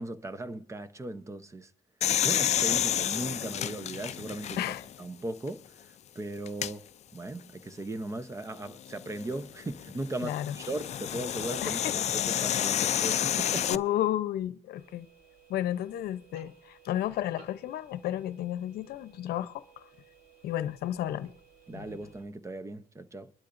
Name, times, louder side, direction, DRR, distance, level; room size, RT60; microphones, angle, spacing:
voice 1, 0.0-1.7 2.2-4.6 5.0-13.7 21.7-23.3, right 2 dB, 15° right, 0.8 m, -38 dB
sound 1, 2.0-4.9 5.5-5.6 6.5-6.7 8.9-13.8, left 10 dB, 40° left, 0.4 m, -30 dB
voice 2, 10.2-10.5 11.6-12.0 13.7-15.1 15.5-19.9 20.4-21.3 21.7-22.0, left 12 dB, 70° left, 0.8 m, -32 dB
sound 2, 14.7-22.2, right 5 dB, 65° right, 6.5 m, -58 dB
23.0 x 11.5 x 2.6 m
cardioid pair, 110°, 17 cm